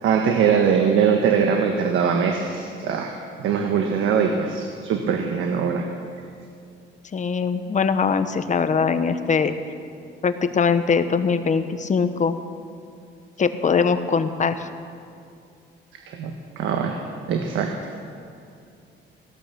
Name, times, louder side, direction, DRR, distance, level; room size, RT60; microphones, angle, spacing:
voice 1, 0.0-5.9 16.1-17.0 17.3-17.8, right 6 dB, 80° right, 3 dB, 1.3 m, -22 dB
voice 2, 7.1-9.5 10.2-12.4 13.4-14.7, left 5 dB, 40° left, 10 dB, 1.1 m, -22 dB
16.5 x 12.0 x 6.9 m, 2.5 s
cardioid pair, 90°, 20 cm